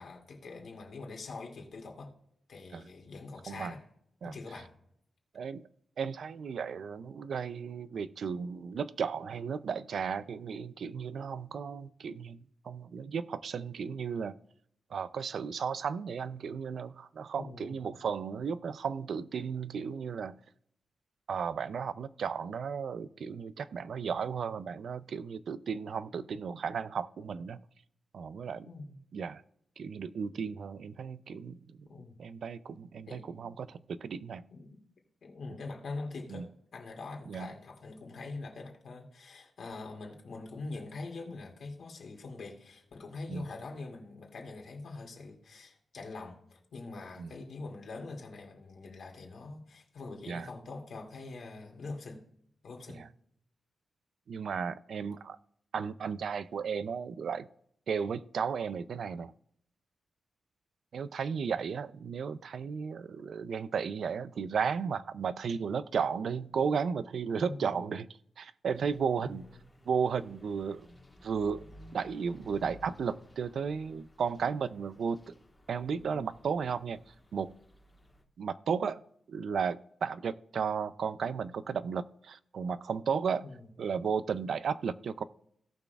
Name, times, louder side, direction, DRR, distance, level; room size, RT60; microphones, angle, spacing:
voice 1, 0.0-2.1 2.5-3.8 4.2-4.7 17.4-17.8 28.6-29.0 31.9-32.2 33.1-33.5 34.5-34.8 35.2-52.2 52.6-53.1 67.3-67.9 69.2-69.5 75.9-76.3 83.4-83.7, left 3 dB, 60° left, 1 dB, 2.4 m, -44 dB
voice 2, 5.3-5.7 6.0-14.3 14.9-20.3 21.3-27.6 28.1-28.7 29.1-29.4 29.8-31.9 32.2-34.4 36.3-36.4 37.3-37.5 43.3-43.5 47.2-47.3 50.3-50.5 52.9-53.1 54.3-55.4 55.7-57.5 57.9-59.3 60.9-68.1 68.4-69.5 69.9-70.9 71.2-71.7 71.9-75.3 75.7-77.5 78.4-83.5 83.8-85.2, right 6 dB, 65° right, 15 dB, 0.4 m, -34 dB
sound 1, 68.7-78.2, equal, 10° left, 1.4 m, -56 dB
17.5 x 6.1 x 2.3 m, 0.70 s
wide cardioid pair, 160°, 0 cm